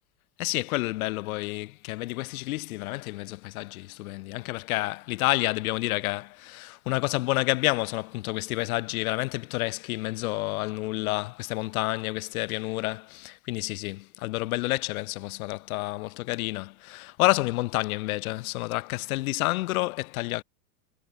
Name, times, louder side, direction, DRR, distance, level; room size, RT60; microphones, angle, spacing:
voice 1, 0.4-20.4, left 20 dB, 65° left, 5.4 m, -29 dB
supercardioid pair, 140°, 45 cm